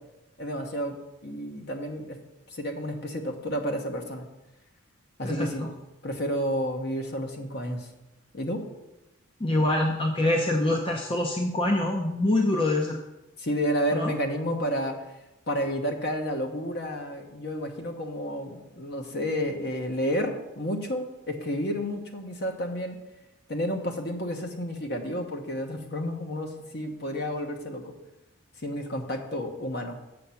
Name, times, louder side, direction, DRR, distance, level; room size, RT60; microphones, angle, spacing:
voice 1, 0.4-1.0 1.2-2.2 2.5-4.3 5.2-5.7 6.0-7.9 8.3-8.6 13.4-14.9 15.5-23.0 23.5-27.9 28.6-30.0, equal, 50° left, 4 dB, 1.1 m, -31 dB
voice 2, 5.2-5.7 9.4-13.0 13.9-14.1, left 1 dB, 25° left, 2 dB, 0.6 m, -25 dB
7.9 x 6.6 x 5.8 m, 0.96 s
head